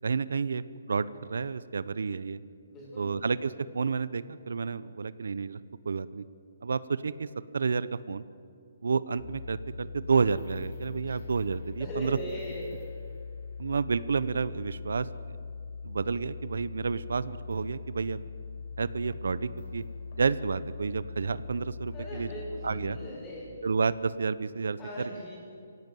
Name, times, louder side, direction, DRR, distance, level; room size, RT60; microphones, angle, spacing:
voice 1, 0.0-2.4 2.9-5.6 5.8-6.2 6.6-7.3 7.5-8.2 8.8-12.2 13.6-15.1 15.8-18.2 18.8-19.8 20.2-22.3 22.6-23.0 23.6-24.8, right 5 dB, 75° right, 16 dB, 0.8 m, -30 dB
voice 2, 2.7-3.2 11.0-11.2 11.8-12.8 21.9-23.6 24.8-25.4, left 1 dB, 15° left, -3 dB, 5.9 m, -39 dB
sound 1, 9.2-23.1, left 5 dB, 40° left, 4.5 m, -41 dB
22.0 x 17.0 x 9.2 m, 2.4 s
hypercardioid pair, 170°, 0 cm